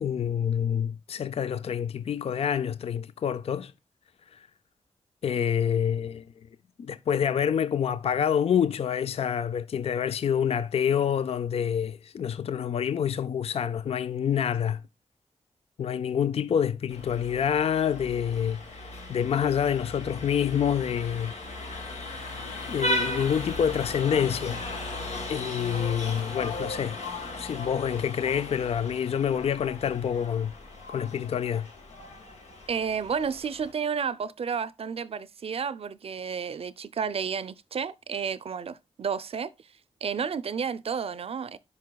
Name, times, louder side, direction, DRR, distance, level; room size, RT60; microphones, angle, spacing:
voice 1, 0.0-3.7 5.2-6.2 6.8-14.8 15.8-18.8 19.1-21.3 22.7-24.6 25.3-27.0 27.4-30.5 30.9-31.7, left 8 dB, 60° left, 0.4 m, -27 dB
Vehicle horn car horn honking, 16.9-33.7, left 1 dB, 90° left, 1.5 m, -37 dB
voice 2, 32.7-39.5 40.0-41.6, right 6 dB, 60° right, 0.5 m, -31 dB
10.5 x 5.4 x 2.3 m
wide cardioid pair, 80°, 11 cm